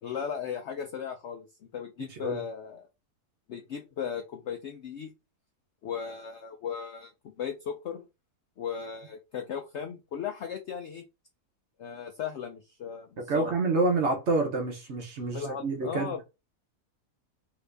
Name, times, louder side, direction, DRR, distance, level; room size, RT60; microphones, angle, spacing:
voice 1, 0.0-1.5 1.7-2.9 3.5-5.1 5.8-8.0 8.6-11.0 11.8-13.5 15.3-16.2, left 7 dB, 75° left, 0.6 m, -36 dB
voice 2, 2.0-2.4 13.3-16.2, right 3 dB, 60° right, 0.8 m, -28 dB
2.9 x 2.5 x 3.3 m
omnidirectional pair, 1.7 m